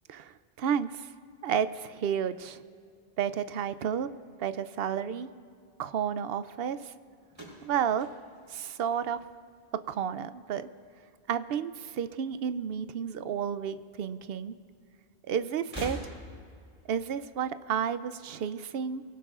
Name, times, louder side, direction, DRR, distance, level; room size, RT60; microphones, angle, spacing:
voice 1, 0.1-1.1 1.4-2.6 3.2-4.1 4.4-5.3 5.8-6.9 7.6-8.1 8.5-9.2 9.9-10.7 11.3-14.5 15.3-16.1 16.9-19.0, right 8 dB, 75° right, 13 dB, 0.8 m, -31 dB
sound 1, 7.3-9.6 9.9-10.5 11.6-12.6 12.8-13.0 14.1-14.2 15.6-16.6, equal, 25° right, 3.8 m, -44 dB
23.5 x 17.5 x 2.4 m, 2.3 s
omnidirectional pair, 1.0 m